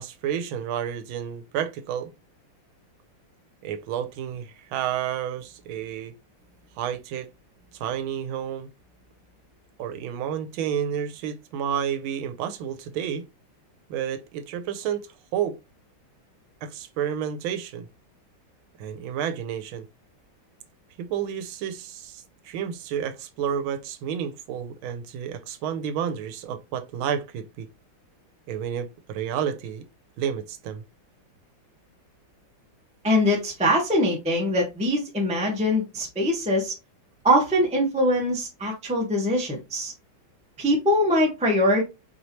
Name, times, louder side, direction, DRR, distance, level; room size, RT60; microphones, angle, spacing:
voice 1, 0.0-2.1 3.6-6.1 6.8-7.3 7.7-8.7 9.8-13.2 13.9-15.1 15.3-15.6 16.6-17.9 18.8-19.9 21.0-27.7 28.5-29.8 30.2-30.8, right 9 dB, 85° right, 1.4 m, -30 dB
voice 2, 33.0-36.7 37.2-39.9 40.6-41.8, equal, 5° right, 0.5 m, -22 dB
4.6 x 3.1 x 2.8 m
omnidirectional pair, 2.2 m